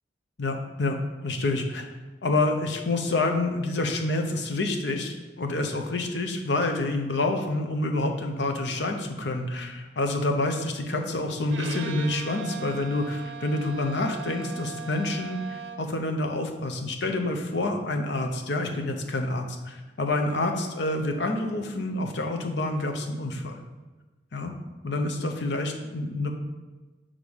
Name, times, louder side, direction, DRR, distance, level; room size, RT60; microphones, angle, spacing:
voice 1, 0.4-1.9 2.2-23.6 24.3-24.5 24.8-26.3, left 2 dB, 70° left, 4 dB, 0.8 m, -28 dB
Bowed string instrument, 11.5-16.0, right 6 dB, 75° right, 0.6 m, -39 dB
6.5 x 3.7 x 5.4 m, 1.2 s
head